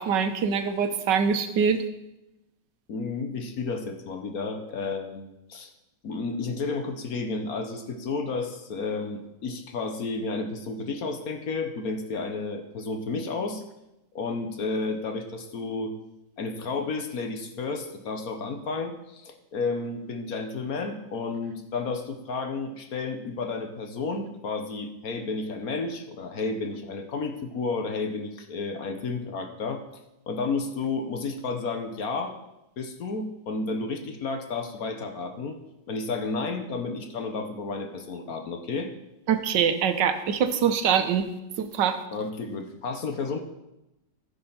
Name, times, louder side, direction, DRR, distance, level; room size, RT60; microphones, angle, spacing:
voice 1, 0.0-1.8 39.3-41.3 41.6-42.0, right 7 dB, 75° right, 8 dB, 1.5 m, -24 dB
voice 2, 2.9-5.7 6.0-13.6 14.1-15.9 16.4-29.8 30.3-32.3 32.8-35.6 35.9-38.9 42.1-43.4, left 4 dB, 55° left, 5 dB, 1.4 m, -32 dB
14.5 x 5.6 x 5.6 m, 0.91 s
omnidirectional pair, 2.0 m